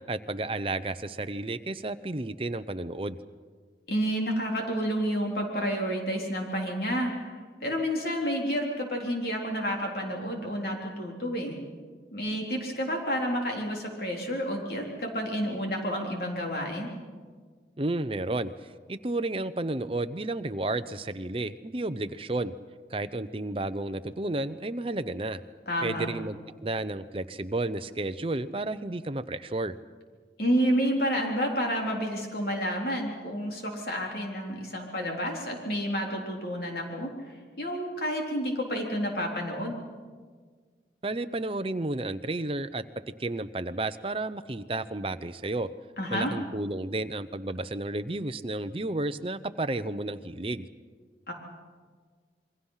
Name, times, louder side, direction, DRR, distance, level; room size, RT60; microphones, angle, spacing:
voice 1, 0.1-3.2 17.8-18.5 18.9-22.5 22.9-25.4 25.8-29.7 41.0-42.8 43.2-45.7 46.1-50.7, right 2 dB, 30° right, 11 dB, 0.7 m, -32 dB
voice 2, 3.9-7.3 7.6-11.6 12.1-16.9 25.7-26.1 30.4-37.1 37.6-39.7 46.0-46.3 51.3-51.4, equal, 60° left, 0 dB, 3.7 m, -30 dB
28.0 x 22.5 x 5.7 m, 1.5 s
head